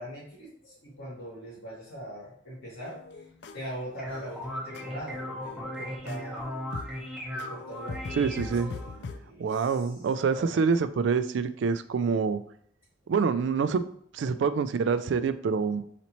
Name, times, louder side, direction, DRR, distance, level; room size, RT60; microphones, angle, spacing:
voice 1, 0.0-3.0 3.5-6.5 7.3-9.8 10.3-10.8 13.0-13.1, equal, 85° left, -10 dB, 1.9 m, -42 dB
sound 1, 2.8-9.2, left 4 dB, 55° left, 0.3 m, -42 dB
sound 2, 3.7-9.0, equal, 5° right, 0.7 m, -38 dB
voice 2, 8.1-8.7 9.4-12.4 13.1-13.8 14.1-15.8, right 5 dB, 70° right, 12 dB, 0.3 m, -26 dB
4.1 x 3.0 x 4.2 m, 0.63 s
head